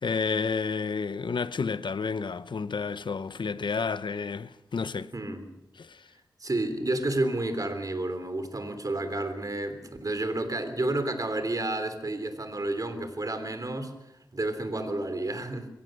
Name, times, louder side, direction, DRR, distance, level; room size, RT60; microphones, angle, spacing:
voice 1, 0.0-5.1 5.8-6.0, left 5 dB, 85° left, 0.7 m, -30 dB
voice 2, 5.1-5.4 6.4-13.9 14.3-15.7, right 2 dB, 50° right, 3.3 m, -30 dB
23.0 x 17.0 x 6.6 m
wide cardioid pair, 60°, 8 cm